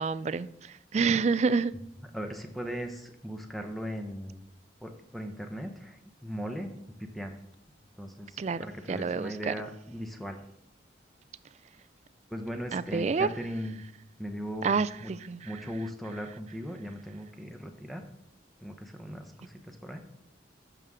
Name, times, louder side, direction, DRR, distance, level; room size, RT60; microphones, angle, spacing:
voice 1, 0.0-1.7 8.4-9.5 12.7-13.3 14.6-15.5, right 5 dB, 40° right, 16 dB, 0.3 m, -28 dB
voice 2, 2.1-4.4 4.8-6.7 7.0-7.4 8.0-10.4 12.3-13.8 14.2-15.1 15.4-18.1 18.6-20.0, equal, ahead, 4 dB, 0.8 m, -38 dB
12.5 x 6.9 x 3.6 m, 0.77 s
head